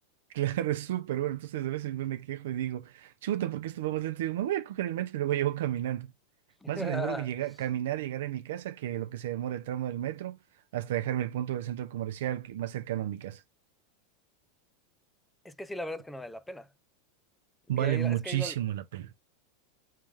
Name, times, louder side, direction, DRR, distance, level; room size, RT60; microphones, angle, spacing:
voice 1, 0.3-6.1 6.7-10.4 10.7-13.4 17.7-19.1, right 12 dB, 75° right, 0.6 m, -32 dB
voice 2, 6.6-7.3 15.4-16.7 17.7-18.6, left 1 dB, 5° left, 0.5 m, -37 dB
3.4 x 3.2 x 3.3 m
hypercardioid pair, 115°, 0 cm